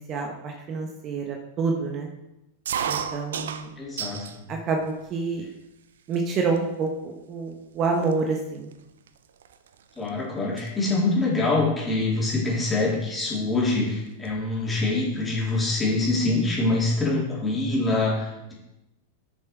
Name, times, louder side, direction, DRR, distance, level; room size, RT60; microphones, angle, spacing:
voice 1, 0.0-2.1 2.8-3.7 4.5-5.5 6.1-8.7, right 4 dB, 35° right, 2 dB, 1.2 m, -28 dB
sound 1, 2.7-4.4 4.8-5.5 6.1-6.2 6.5-6.9 7.5-7.6 7.8-10.1 10.4-10.7 12.0-12.3 13.4-13.5 13.7-13.8 14.1-14.9, right 7 dB, 70° right, 0.5 m, -34 dB
voice 2, 3.8-4.4 10.0-18.5, left 2 dB, 15° left, -4 dB, 3.6 m, -25 dB
8.3 x 6.7 x 4.7 m, 0.93 s
figure-of-eight pair, 95°, 0 cm